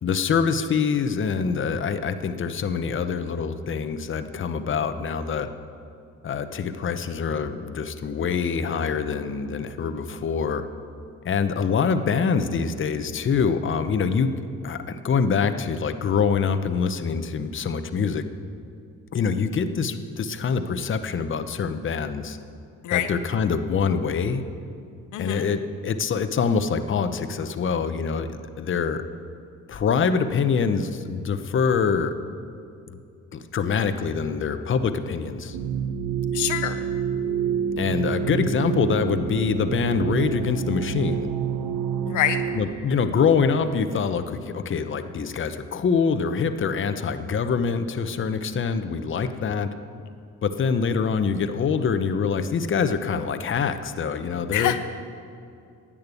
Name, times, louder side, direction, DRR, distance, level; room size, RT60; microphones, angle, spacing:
voice 1, 0.0-5.5 6.2-10.7 11.2-14.3 14.6-18.2 19.1-22.4 22.9-24.4 25.2-28.3 28.6-29.0 29.7-32.2 32.9-33.0 33.3-35.6 37.8-41.3 42.5-49.7 50.4-54.8, left 6 dB, 40° left, 9 dB, 0.8 m, -25 dB
voice 2, 25.1-25.4 36.3-36.8 42.1-42.4 54.5-54.8, left 11 dB, 80° left, 9 dB, 0.7 m, -25 dB
sound 1, 35.5-42.6, right 7 dB, 85° right, 0.8 m, -27 dB
10.5 x 8.7 x 8.4 m, 2.5 s
cardioid pair, 90°, 30 cm